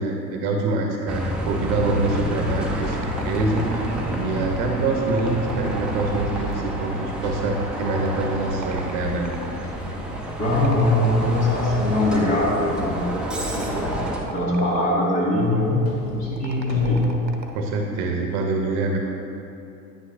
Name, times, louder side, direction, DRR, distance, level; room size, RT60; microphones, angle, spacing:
voice 1, 0.0-9.3 17.5-19.0, right 3 dB, 45° right, 2 dB, 1.0 m, -25 dB
Bus, 1.1-14.2, equal, ahead, 0.8 m, -29 dB
sound 1, 2.5-4.1 5.0-6.8 7.8-9.6 10.6-12.0 13.5-15.1 16.4-17.7, right 3 dB, 90° right, 0.8 m, -38 dB
sound 2, 7.0-14.6 15.1-17.1, left 1 dB, 50° left, 1.8 m, -43 dB
voice 2, 10.4-13.1 13.5-14.0 14.3-17.0, left 1 dB, 30° left, -5 dB, 2.1 m, -22 dB
9.8 x 9.4 x 2.6 m, 2.8 s
figure-of-eight pair, 85°, 50 cm